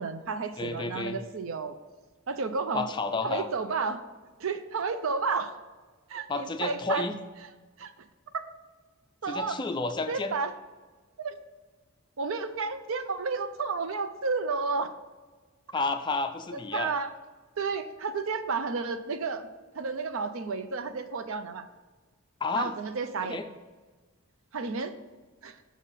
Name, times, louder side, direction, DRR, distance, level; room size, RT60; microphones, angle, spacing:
voice 1, 0.0-1.8 2.3-2.9 3.2-4.0 4.4-5.5 6.1-7.1 7.8-8.1 8.3-8.4 9.2-9.6 10.1-10.5 11.2-11.4 12.2-14.9 16.5-17.2 17.6-19.5 19.7-21.7 22.5-23.4 24.5-24.9 25.4-25.6, right 4 dB, 70° right, 10 dB, 0.5 m, -31 dB
voice 2, 0.6-1.2 2.7-3.5 6.3-7.1 9.3-10.3 15.7-16.9 22.4-22.7 23.2-23.4, left 3 dB, 20° left, 8 dB, 0.3 m, -31 dB
6.2 x 4.1 x 5.4 m, 1.4 s
head